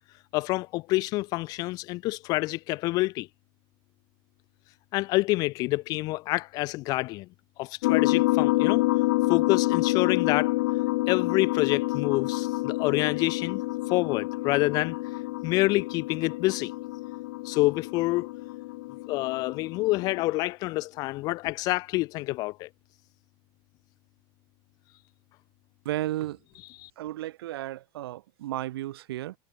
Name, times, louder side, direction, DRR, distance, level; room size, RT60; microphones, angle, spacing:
voice 1, 0.3-3.3 4.9-7.3 7.6-8.8 9.3-10.5 11.1-13.6 13.9-15.0 15.4-16.7 17.4-18.3 19.1-22.7 26.8-26.9, left 20 dB, 30° left, 0.7 m, -27 dB
sound 1, 7.8-20.2, left 21 dB, 55° left, 1.6 m, -28 dB
voice 2, 25.8-26.4 27.0-29.4, right 15 dB, 90° right, 6.7 m, -33 dB
supercardioid pair, 180°, 12 cm